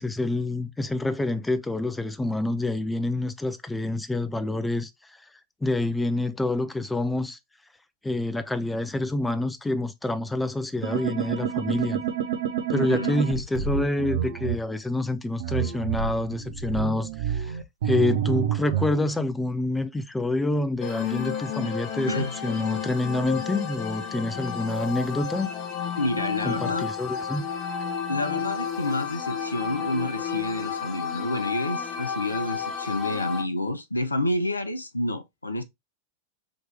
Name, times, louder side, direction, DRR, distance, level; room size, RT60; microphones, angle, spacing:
voice 1, 0.0-4.9 5.6-7.4 8.0-12.0 12.7-17.6 17.8-25.5 26.4-27.4, left 2 dB, 10° left, 0.6 m, -27 dB
sound 1, 10.8-14.6 15.4-19.0, right 8 dB, 60° right, 0.7 m, -28 dB
voice 2, 12.7-13.2 22.1-22.3 26.0-26.9 28.1-35.6, left 2 dB, 85° left, 0.7 m, -29 dB
sound 2, 20.8-33.4, left 7 dB, 40° left, 1.3 m, -32 dB
5.0 x 3.1 x 3.4 m
figure-of-eight pair, 90°, 0 cm